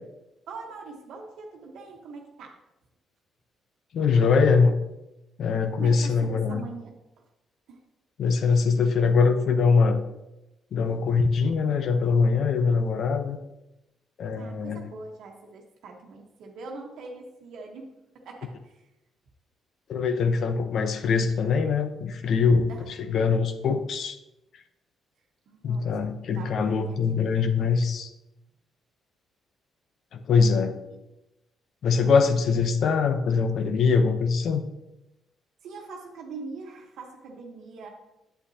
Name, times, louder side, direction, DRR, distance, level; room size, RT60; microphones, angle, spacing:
voice 1, 0.5-2.6 5.7-6.9 7.7-7.8 14.4-18.5 22.7-22.9 25.5-25.8 26.3-27.7 30.9-31.0 35.6-37.9, right 3 dB, 80° right, 1 dB, 1.1 m, -42 dB
voice 2, 3.9-4.8 5.4-6.6 8.2-10.0 10.7-13.4 14.2-14.8 19.9-24.2 25.6-28.1 30.1-30.8 31.8-34.6, left 5 dB, 65° left, 8 dB, 0.8 m, -23 dB
8.3 x 8.1 x 2.8 m, 0.94 s
cardioid pair, 90°, 0 cm